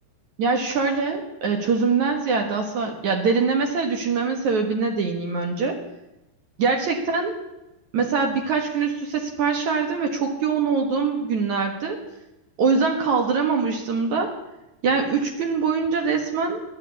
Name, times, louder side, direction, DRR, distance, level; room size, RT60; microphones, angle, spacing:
voice 1, 0.4-5.8 6.6-7.4 7.9-12.0 12.6-14.4 14.8-16.6, right 5 dB, 60° right, 3 dB, 2.5 m, -23 dB
15.0 x 11.5 x 8.3 m, 0.94 s
omnidirectional pair, 4.5 m